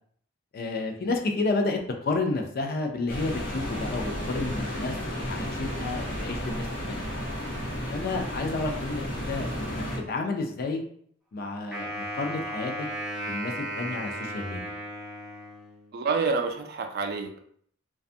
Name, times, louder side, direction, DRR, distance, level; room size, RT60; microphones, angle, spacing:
voice 1, 0.5-7.1 7.9-10.8 11.3-12.9 13.3-14.7, left 3 dB, 50° left, 3 dB, 0.4 m, -31 dB
sound 1, 3.1-10.0, equal, 65° left, 0.9 m, -33 dB
Wind instrument woodwind instrument, 11.7-16.0, right 1 dB, ahead, 0.6 m, -35 dB
voice 2, 15.9-17.4, right 4 dB, 55° right, 5 dB, 0.4 m, -28 dB
2.6 x 2.3 x 2.5 m, 0.62 s
head